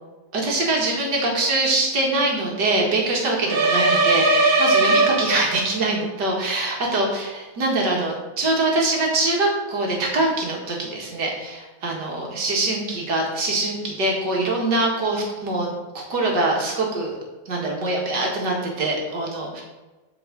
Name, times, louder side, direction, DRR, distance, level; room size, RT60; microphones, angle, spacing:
voice 1, 0.3-17.2 17.5-19.6, right 2 dB, 55° right, -1 dB, 2.4 m, -23 dB
sound 1, 3.5-5.8, right 2 dB, 80° right, 1.9 m, -19 dB
7.9 x 5.3 x 5.1 m, 1.2 s
omnidirectional pair, 2.2 m